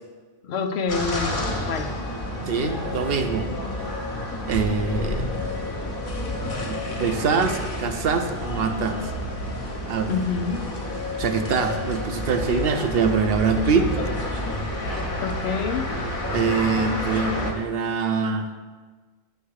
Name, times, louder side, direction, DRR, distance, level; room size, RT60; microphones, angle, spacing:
voice 1, 0.4-1.9 10.1-10.6 15.2-15.9, left 5 dB, 85° left, 6 dB, 1.0 m, -27 dB
sound 1, 0.9-17.5, left 1 dB, 50° left, 1.3 m, -29 dB
voice 2, 2.5-3.5 4.5-5.3 6.6-9.0 9.9-10.1 11.2-13.9 16.3-18.5, right 5 dB, 65° right, 7 dB, 0.9 m, -24 dB
9.3 x 3.5 x 6.4 m, 1.4 s
omnidirectional pair, 1.1 m